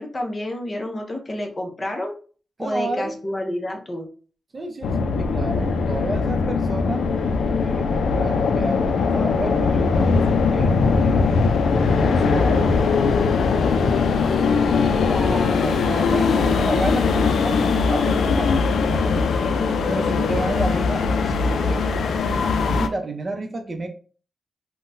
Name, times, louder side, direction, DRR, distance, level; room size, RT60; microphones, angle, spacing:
voice 1, 0.0-2.1 2.6-4.1 14.9-15.9, left 1 dB, 25° left, 2 dB, 0.7 m, -29 dB
voice 2, 2.6-3.2 4.5-7.1 7.6-11.2 11.9-13.3 14.6-19.2 19.9-21.9 22.7-23.9, right 2 dB, 35° right, 4 dB, 0.6 m, -31 dB
sound 1, 4.8-22.9, left 4 dB, 80° left, 0.3 m, -20 dB
3.7 x 2.1 x 2.6 m, 0.39 s
wide cardioid pair, 115°, 0 cm